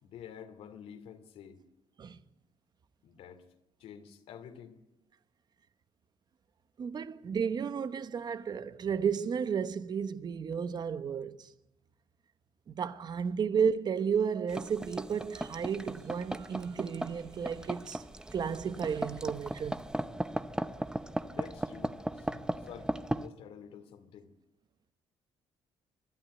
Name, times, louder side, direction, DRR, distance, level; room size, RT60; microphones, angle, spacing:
voice 1, 0.0-1.6 3.0-3.5 3.8-4.8 7.0-7.1 21.3-24.3, left 8 dB, 80° left, 2.5 m, -49 dB
voice 2, 6.8-11.5 12.7-18.0 18.3-19.8, right 7 dB, 45° right, 1.1 m, -33 dB
sound 1, 14.5-23.3, right 1 dB, 5° right, 0.8 m, -37 dB
24.5 x 12.0 x 9.7 m
cardioid pair, 110°, 10 cm